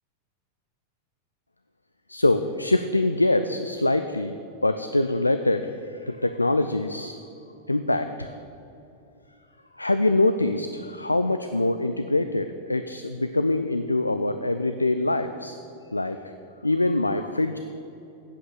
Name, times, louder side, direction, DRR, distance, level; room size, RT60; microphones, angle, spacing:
voice 1, 2.1-4.3 4.6-7.2 7.7-8.3 9.7-15.6 15.9-16.2 16.6-17.6, left 2 dB, 85° left, 9 dB, 0.4 m, -24 dB
8.5 x 8.0 x 8.3 m, 2.8 s
figure-of-eight pair, 90°, 0 cm